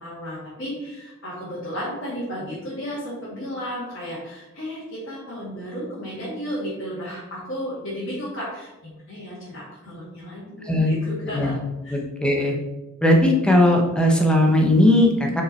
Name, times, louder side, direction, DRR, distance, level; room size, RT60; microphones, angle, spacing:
voice 1, 0.0-11.5 11.8-12.0, equal, 60° left, -9 dB, 2.3 m, -33 dB
voice 2, 11.2-11.6 11.9-12.5 13.0-15.4, left 1 dB, 5° left, 0 dB, 1.0 m, -18 dB
5.8 x 5.2 x 4.5 m, 1.1 s
head